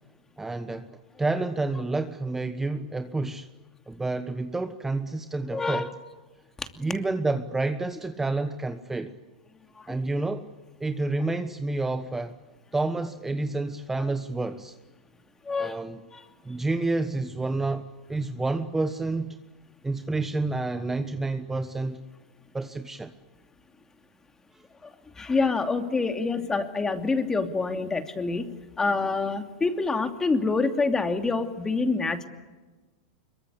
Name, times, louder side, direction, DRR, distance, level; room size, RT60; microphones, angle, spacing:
voice 1, 0.4-3.5 3.9-5.9 6.8-9.2 9.9-10.5 10.8-12.3 12.7-14.8 15.5-16.0 16.4-19.4 19.8-22.0 22.5-23.1, right 2 dB, 10° right, 9 dB, 1.2 m, -29 dB
voice 2, 5.5-5.9 6.6-6.7 9.8-10.0 15.5-15.8 16.1-16.2 25.2-32.3, left 3 dB, 15° left, 6 dB, 2.7 m, -26 dB
25.0 x 23.0 x 8.4 m, 1.3 s
hypercardioid pair, 115°, 4 cm